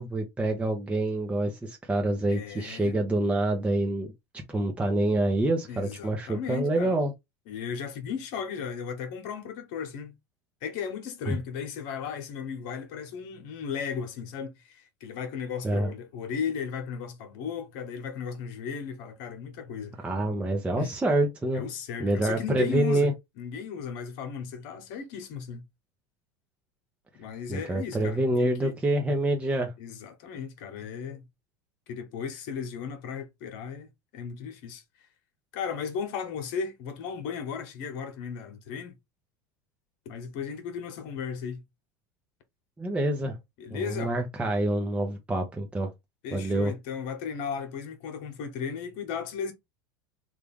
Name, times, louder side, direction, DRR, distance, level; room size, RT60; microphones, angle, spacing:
voice 1, 0.0-4.1 4.5-7.1 11.3-11.4 15.6-15.9 20.0-21.6 22.0-23.1 27.5-29.7 42.8-43.4 43.7-45.9 46.3-46.7, right 1 dB, 10° right, 0.8 m, -26 dB
voice 2, 2.3-3.0 5.7-6.9 7.5-10.1 10.6-20.1 20.8-20.9 21.5-23.1 23.4-25.6 27.2-28.8 29.8-31.3 31.9-33.9 34.1-34.8 35.5-38.9 40.0-41.6 43.6-44.1 46.2-49.5, left 6 dB, 65° left, 1.1 m, -35 dB
3.4 x 2.5 x 3.5 m
hypercardioid pair, 100°, 10 cm